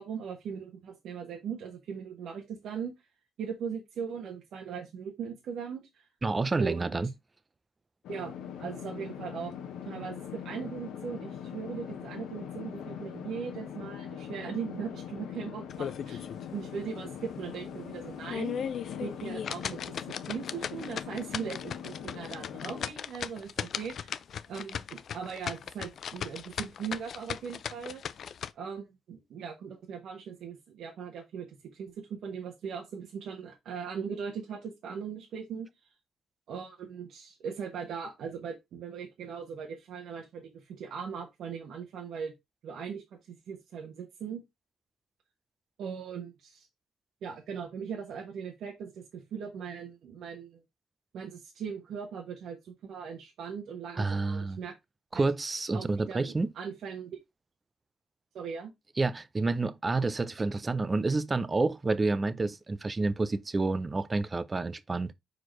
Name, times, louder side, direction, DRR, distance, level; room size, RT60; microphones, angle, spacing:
voice 1, 0.0-2.9 3.4-6.0 6.6-7.0 8.1-8.3 8.6-9.5 9.8-24.2 24.5-28.0 28.5-35.7 36.5-42.3 42.6-44.4 45.8-46.7 47.2-50.6 51.1-54.7 55.1-55.2 55.7-57.2 58.3-58.7, right 6 dB, 75° right, 1.3 m, -39 dB
voice 2, 6.2-7.1 54.0-54.6 55.1-56.5 59.0-65.1, right 3 dB, 25° right, 0.6 m, -29 dB
sound 1, 8.0-22.9, left 8 dB, 80° left, 1.1 m, -42 dB
sound 2, 15.7-16.4 16.8-16.9 17.4-17.5 18.1-28.5, left 8 dB, 60° left, 0.4 m, -37 dB
4.8 x 4.4 x 4.5 m
cardioid pair, 90°, 0 cm